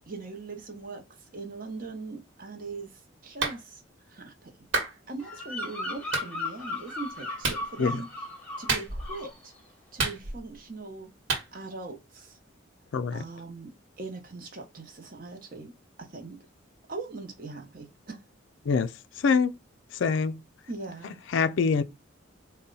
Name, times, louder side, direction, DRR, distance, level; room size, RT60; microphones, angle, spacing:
voice 1, 0.1-1.0 1.3-3.8 4.1-4.7 5.1-8.1 8.6-9.5 9.9-11.1 11.5-12.4 13.1-15.7 16.0-16.4 16.9-18.2 20.7-21.2, right 3 dB, 45° right, 0.8 m, -40 dB
Clapping, 3.4-3.6 4.7-4.9 6.1-6.3 7.4-7.7 8.7-9.2 10.0-10.6 11.3-11.5, right 3 dB, 70° right, 1.2 m, -29 dB
Bird vocalization bird call bird song, 5.2-8.7 9.0-9.4, left 2 dB, 5° left, 0.9 m, -36 dB
voice 2, 12.9-13.2 18.7-18.9 19.2-19.5 20.0-20.4 21.3-21.8, left 5 dB, 70° left, 0.4 m, -24 dB
4.1 x 2.2 x 3.8 m
head